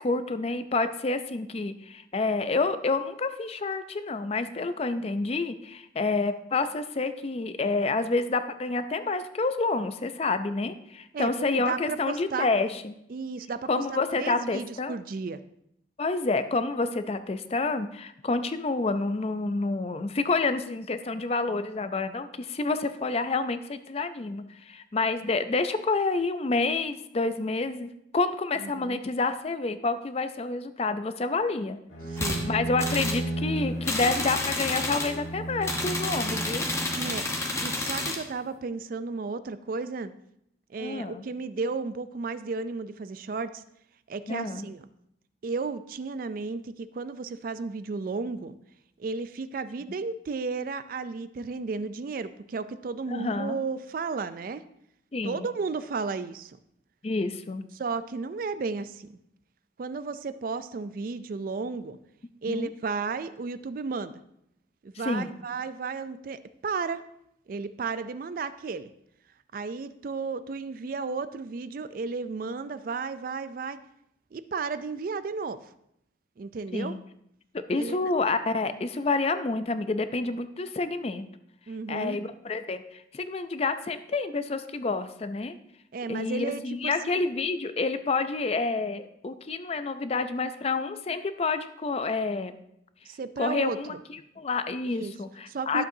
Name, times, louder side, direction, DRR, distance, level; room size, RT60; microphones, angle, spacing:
voice 1, 0.0-12.9 13.7-15.0 16.0-27.9 28.1-31.8 32.5-36.7 40.8-41.2 44.3-44.7 53.1-53.6 55.1-55.5 57.0-57.7 62.5-62.7 65.0-65.3 76.7-77.0 77.5-81.3 81.9-85.6 86.1-92.5 93.4-93.9 94.4-95.8, left 3 dB, 30° left, 11 dB, 0.4 m, -28 dB
voice 2, 11.1-12.5 13.1-15.4 28.6-29.0 32.1-32.5 36.9-40.1 40.7-43.6 44.1-44.9 45.4-48.6 49.0-54.6 55.2-56.6 57.7-59.2 59.8-62.0 62.4-64.2 64.8-67.0 67.5-68.9 69.5-73.8 74.3-75.6 76.4-77.0 77.7-78.1 81.7-82.2 85.9-86.9 93.1-94.0 94.9-95.1 95.5-95.8, right 4 dB, 45° right, 13 dB, 0.3 m, -33 dB
Bowed string instrument, 31.9-37.7, right 1 dB, 70° left, 2.7 m, -34 dB
sound 1, 32.2-32.4 32.8-33.2 33.8-35.2 35.6-38.2, left 2 dB, 15° left, 0.9 m, -30 dB
11.5 x 7.6 x 2.7 m, 0.76 s
head